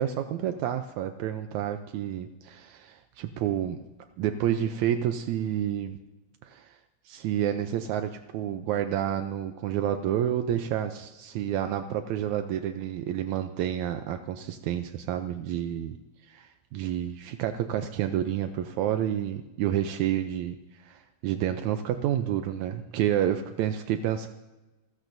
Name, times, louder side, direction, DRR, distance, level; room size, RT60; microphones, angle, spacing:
voice 1, 0.0-3.8 4.2-6.0 6.4-6.8 7.1-16.0 16.3-24.3, right 10 dB, 80° right, 7 dB, 2.0 m, -29 dB
28.5 x 14.5 x 2.7 m, 1.1 s
omnidirectional pair, 3.4 m